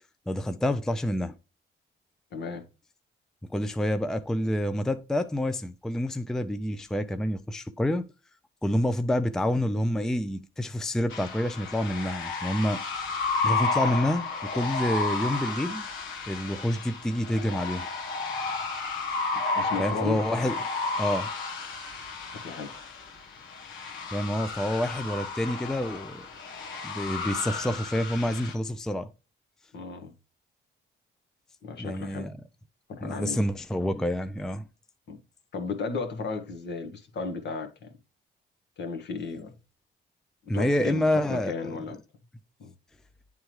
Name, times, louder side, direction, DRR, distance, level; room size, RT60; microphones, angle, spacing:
voice 1, 0.3-1.3 3.5-8.1 8.6-12.8 13.4-15.9 16.3-17.9 19.8-20.6 21.0-21.3 24.1-26.3 26.8-29.1 31.8-32.4 33.0-34.6 40.5-41.7, left 1 dB, 5° left, 0.4 m, -28 dB
voice 2, 2.3-2.7 19.5-20.2 22.4-22.7 29.7-30.1 31.6-32.3 32.9-33.4 35.1-35.2 35.5-37.9 38.8-39.5 40.5-42.0 42.6-42.7, left 4 dB, 60° left, 1.4 m, -34 dB
sound 1, 11.1-28.5, left 3 dB, 80° left, 1.6 m, -32 dB
9.1 x 3.5 x 3.1 m
cardioid pair, 90°, 20 cm